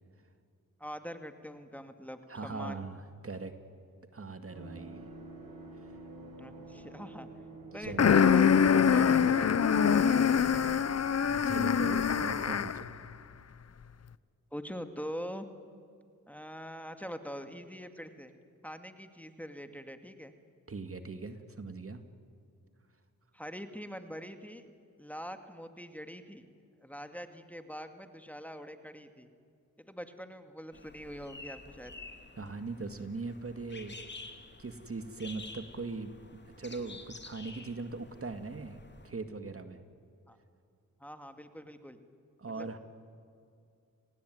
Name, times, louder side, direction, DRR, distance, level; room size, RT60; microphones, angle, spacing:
voice 1, 0.8-2.9 6.4-7.3 7.7-11.0 14.5-15.4 16.3-18.3 18.6-20.3 23.3-24.7 25.0-26.5 26.8-29.3 29.8-31.9 40.3-40.4 41.0-42.0 42.5-42.8, equal, 5° left, 8 dB, 2.2 m, -43 dB
voice 2, 2.3-3.5 4.1-5.0 7.8-8.2 11.2-12.9 20.7-22.0 32.4-34.1 34.6-36.1 36.6-38.8 39.0-39.8 42.4-42.8, right 3 dB, 40° right, 8 dB, 2.1 m, -40 dB
sound 1, 4.5-13.0 13.2-13.3, right 2 dB, 80° right, 7.6 m, -49 dB
sound 2, 8.0-12.9, left 7 dB, 50° left, 0.8 m, -24 dB
sound 3, 30.7-39.1, left 3 dB, 30° left, 2.6 m, -50 dB
29.5 x 19.0 x 9.4 m, 2.4 s
cardioid pair, 60°, 34 cm